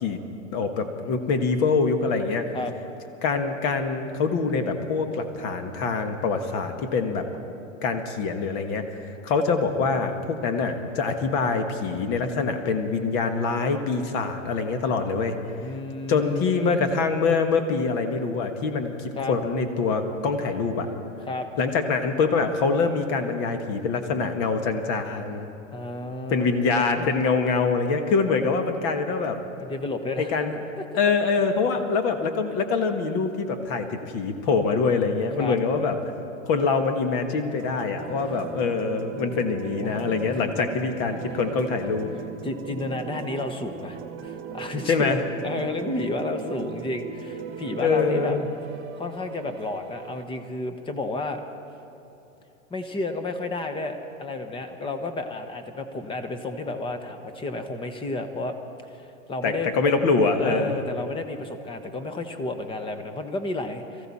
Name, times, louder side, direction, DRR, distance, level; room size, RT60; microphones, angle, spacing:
voice 1, 0.5-2.5 3.2-7.3 7.8-8.8 9.2-15.3 16.1-20.9 21.6-25.5 26.3-29.4 30.3-30.5 30.9-36.0 36.4-42.1 44.9-45.2 47.8-48.4 59.4-60.8, left 4 dB, 45° left, 7 dB, 1.6 m, -24 dB
voice 2, 15.6-16.9 19.2-19.4 21.3-21.5 25.7-26.6 26.9-27.1 29.6-30.4 30.8-30.9 35.4-35.6 39.2-40.0 40.4-40.7 42.4-48.4 49.0-51.4 52.7-58.5 58.8-59.8 60.4-64.1, left 2 dB, 15° left, 8 dB, 0.9 m, -32 dB
sound 1, 37.6-50.2, right 6 dB, 30° right, 1.2 m, -38 dB
23.0 x 14.5 x 4.2 m, 2.9 s
hypercardioid pair, 135°, 40 cm